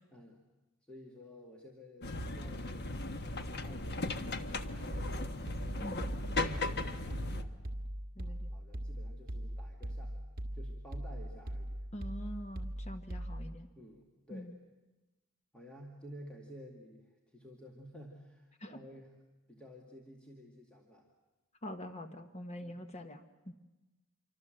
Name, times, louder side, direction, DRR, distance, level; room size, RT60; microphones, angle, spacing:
voice 1, 0.1-0.4 0.9-5.2 5.7-7.6 8.2-10.2 10.5-11.9 13.8-14.5 15.5-19.2 19.5-21.1 22.6-22.9, equal, 5° left, -1 dB, 2.2 m, -54 dB
sound 1, 2.0-7.4, left 2 dB, 50° left, 1.2 m, -37 dB
sound 2, 4.9-13.6, equal, 40° right, 2.0 m, -40 dB
voice 2, 8.2-8.5 11.9-13.7 14.3-14.5 18.6-18.7 21.6-23.5, equal, 30° left, 8 dB, 1.2 m, -44 dB
26.5 x 24.5 x 7.8 m, 1.1 s
head